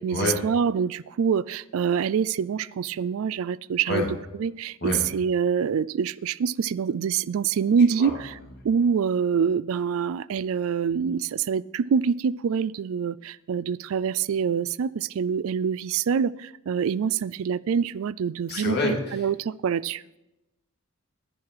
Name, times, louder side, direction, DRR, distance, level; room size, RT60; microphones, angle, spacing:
voice 1, 0.0-4.1 4.4-8.3 8.6-20.2, right 6 dB, 70° right, 21 dB, 0.3 m, -25 dB
voice 2, 18.5-19.2, left 3 dB, 45° left, 0 dB, 2.6 m, -27 dB
11.0 x 10.5 x 4.8 m, 0.97 s
head